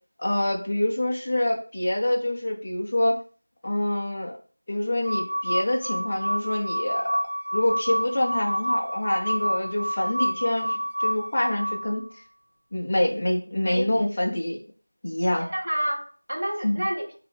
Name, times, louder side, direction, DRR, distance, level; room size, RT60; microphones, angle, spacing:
voice 1, 0.2-3.2 3.6-4.3 4.7-7.1 7.5-12.1 12.7-14.6 15.0-15.5 16.6-16.9, left 1 dB, 10° left, -1 dB, 0.3 m, -26 dB
sound 1, 5.0-12.1, equal, 65° right, 0.7 m, -28 dB
voice 2, 15.3-17.2, equal, 25° right, 0 dB, 0.7 m, -29 dB
6.6 x 2.5 x 3.3 m, 0.40 s
figure-of-eight pair, 180°, 0 cm